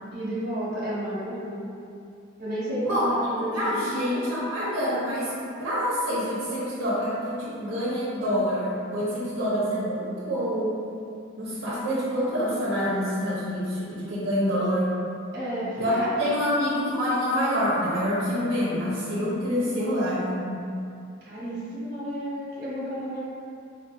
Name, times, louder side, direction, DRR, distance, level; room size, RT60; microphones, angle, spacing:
voice 1, 0.1-1.7 2.4-3.9 15.3-16.1 19.6-19.9 21.2-23.2, equal, 55° right, -9 dB, 1.1 m, -32 dB
voice 2, 3.4-10.7 11.4-14.9 15.8-20.7, equal, 85° right, -9 dB, 0.7 m, -26 dB
4.2 x 2.7 x 2.3 m, 2.5 s
head